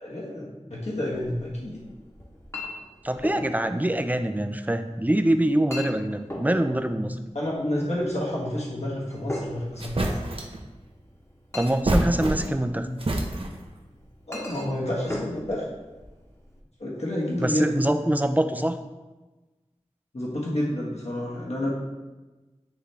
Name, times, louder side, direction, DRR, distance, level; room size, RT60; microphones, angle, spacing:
voice 1, 0.0-1.8 7.3-10.2 14.3-15.6 16.8-17.8 20.1-21.7, left 1 dB, 65° left, -5 dB, 1.6 m, -29 dB
Chink clink, 1.1-16.6, left 1 dB, 25° left, 1.1 m, -41 dB
voice 2, 3.0-7.2 11.5-12.9 17.4-18.8, right 1 dB, 15° right, 8 dB, 0.5 m, -24 dB
sound 1, 9.3-9.4 9.8-10.6 11.6-12.7 13.0-13.7, right 1 dB, 50° right, 0.8 m, -27 dB
9.6 x 3.4 x 3.4 m, 1.2 s
wide cardioid pair, 50°, 12 cm